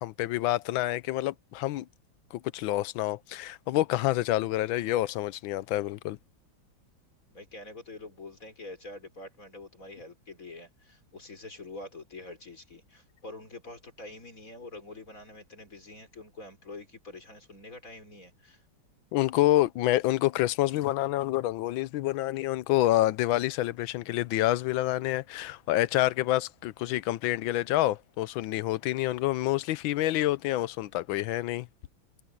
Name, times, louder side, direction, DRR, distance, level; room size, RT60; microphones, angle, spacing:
voice 1, 0.0-1.8 2.3-6.2 19.1-31.7, left 15 dB, 75° left, 1.4 m, -27 dB
voice 2, 7.3-18.6, left 2 dB, 40° left, 4.7 m, -46 dB
omnidirectional pair, 2.2 m